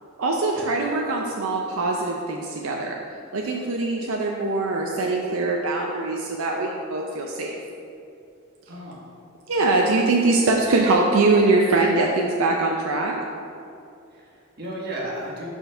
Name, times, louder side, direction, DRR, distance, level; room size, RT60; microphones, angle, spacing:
voice 1, 0.2-3.0 3.3-7.6 9.5-13.2, right 3 dB, 80° right, 0 dB, 0.5 m, -22 dB
voice 2, 8.7-9.1 14.1-15.5, right 1 dB, 50° right, -4 dB, 1.4 m, -34 dB
5.6 x 4.5 x 5.5 m, 2.6 s
head